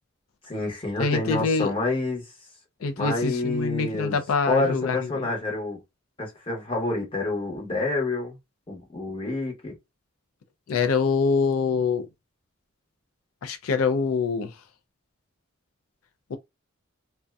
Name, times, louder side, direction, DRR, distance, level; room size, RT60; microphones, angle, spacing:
voice 1, 0.5-2.3 3.0-4.2 4.4-5.8 6.2-8.4 8.7-9.7, left 2 dB, 25° left, 0.8 m, -28 dB
voice 2, 1.0-1.7 2.8-5.3 10.7-12.1 13.4-14.5 16.3-16.4, left 4 dB, 75° left, 0.4 m, -25 dB
2.6 x 2.1 x 2.3 m
head